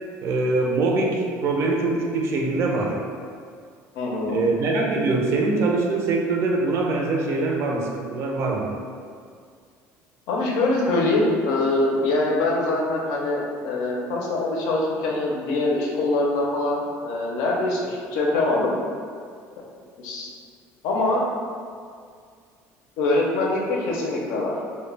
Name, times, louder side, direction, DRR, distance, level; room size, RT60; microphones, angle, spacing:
voice 1, 0.2-3.0 4.3-8.7, right 3 dB, 50° right, 0 dB, 0.4 m, -23 dB
voice 2, 4.0-4.4 10.3-18.7 20.0-20.3 20.8-21.3 23.0-24.6, left 2 dB, 80° left, -2 dB, 0.5 m, -23 dB
2.2 x 2.0 x 3.1 m, 2.2 s
cardioid pair, 140°, 6 cm